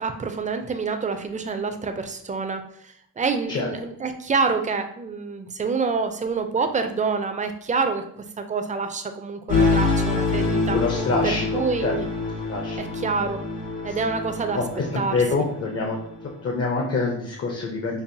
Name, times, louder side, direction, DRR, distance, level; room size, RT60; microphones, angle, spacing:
voice 1, 0.0-8.0 8.4-10.8 11.5-12.1 12.8-13.4 13.8-14.6 15.0-15.2, right 4 dB, 20° right, 7 dB, 0.4 m, -27 dB
sound 1, 9.5-16.3, left 3 dB, 90° left, 1.2 m, -26 dB
voice 2, 10.7-12.0 12.4-12.8 13.9-14.0 14.5-18.0, left 3 dB, 45° left, 1 dB, 0.6 m, -26 dB
5.4 x 2.3 x 2.6 m, 0.68 s
cardioid pair, 95°, 36 cm